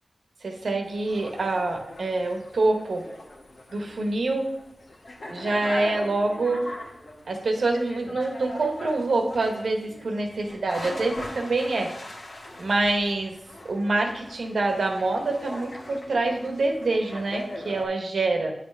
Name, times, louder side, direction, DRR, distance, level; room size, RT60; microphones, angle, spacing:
voice 1, 0.4-3.0 3.7-4.5 5.3-6.6 7.3-11.9 12.6-13.4 13.6-18.5, right 2 dB, 85° right, 3 dB, 1.1 m, -26 dB
sound 1, 0.8-17.9, left 1 dB, 70° left, 1.5 m, -40 dB
9.1 x 5.9 x 3.4 m, 0.84 s
wide cardioid pair, 65°, 0 cm